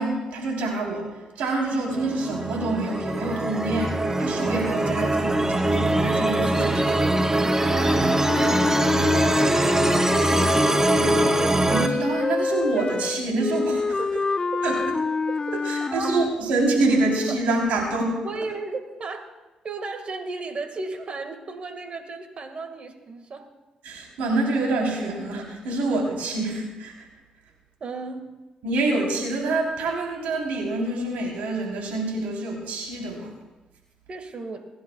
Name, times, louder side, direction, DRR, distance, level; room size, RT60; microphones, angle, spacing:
voice 1, 0.0-7.0 11.7-14.0 14.6-14.8 15.7-18.2 23.8-27.1 28.6-33.3, right 2 dB, 85° right, -1 dB, 3.5 m, -26 dB
sound 1, 1.9-11.9, right 2 dB, 20° right, 0.9 m, -22 dB
sound 2, 7.6-16.3, left 4 dB, 30° left, 0.4 m, -26 dB
voice 2, 9.6-11.0 14.0-14.2 15.5-15.6 15.9-16.1 17.3-17.4 18.2-19.3 19.6-23.5 27.8-28.4 34.1-34.6, right 3 dB, 50° right, 6 dB, 1.8 m, -35 dB
28.0 x 11.0 x 2.3 m, 1.1 s
supercardioid pair, 65°, 3 cm